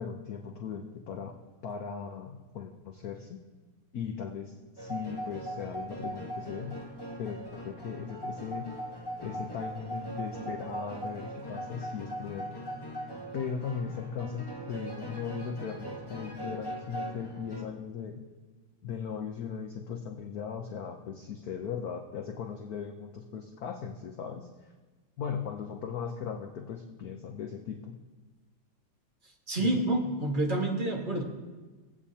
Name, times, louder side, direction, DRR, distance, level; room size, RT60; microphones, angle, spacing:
voice 1, 0.0-1.4 1.6-3.4 3.9-6.8 7.2-8.7 9.2-12.5 13.3-18.3 18.8-24.7 25.2-27.9 29.6-29.7, left 7 dB, 60° left, 3 dB, 1.0 m, -38 dB
sound 1, 4.8-17.6, right 1 dB, 20° left, 0.7 m, -40 dB
voice 2, 29.5-31.2, right 2 dB, 25° right, 0 dB, 1.3 m, -28 dB
22.5 x 8.5 x 2.8 m, 1.3 s
omnidirectional pair, 2.3 m